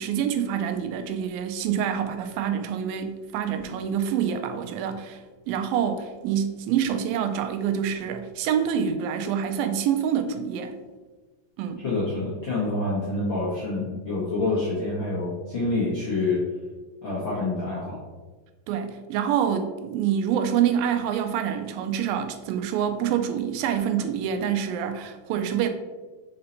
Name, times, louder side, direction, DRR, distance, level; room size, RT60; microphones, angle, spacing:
voice 1, 0.0-5.2 5.5-10.8 11.6-11.8 18.7-25.7, right 8 dB, 85° right, 7 dB, 2.3 m, -26 dB
voice 2, 11.8-16.4 17.0-18.0, left 2 dB, 60° left, -8 dB, 1.3 m, -27 dB
5.6 x 4.3 x 3.9 m, 1.3 s
omnidirectional pair, 4.1 m